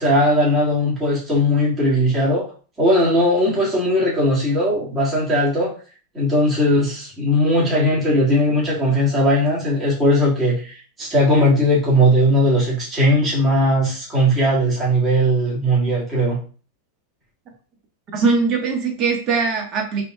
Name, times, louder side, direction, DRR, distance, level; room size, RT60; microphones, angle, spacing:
voice 1, 0.0-2.4 2.8-5.7 6.1-16.4, equal, 20° right, -7 dB, 2.0 m, -18 dB
voice 2, 18.1-20.0, right 4 dB, 40° right, 2 dB, 1.3 m, -21 dB
5.1 x 3.1 x 2.3 m, 0.38 s
hypercardioid pair, 125°, 0 cm